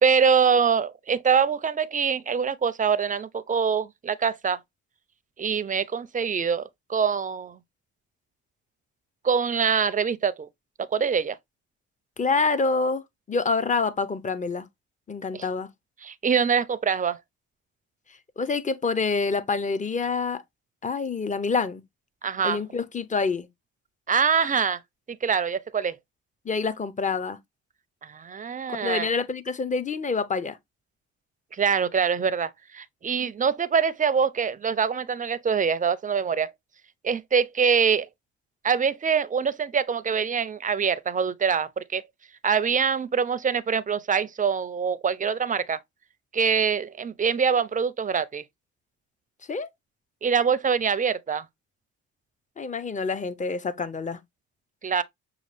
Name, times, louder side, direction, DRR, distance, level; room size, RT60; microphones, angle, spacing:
voice 1, 0.0-4.6 5.4-7.6 9.2-10.5 10.9-11.4 15.3-15.5 16.0-17.2 22.2-22.6 24.1-24.8 25.1-26.0 28.0-29.1 31.5-36.5 37.0-38.1 38.6-42.0 42.4-45.8 46.3-48.4 50.2-51.5 54.8-55.0, right 6 dB, 25° right, 0.4 m, -24 dB
voice 2, 12.2-14.7 15.1-15.7 18.4-20.4 20.8-21.8 22.4-23.5 26.4-27.4 28.7-30.6 49.5-49.7 52.6-54.2, left 4 dB, 25° left, 0.6 m, -27 dB
6.3 x 2.4 x 3.2 m
cardioid pair, 90°, 30 cm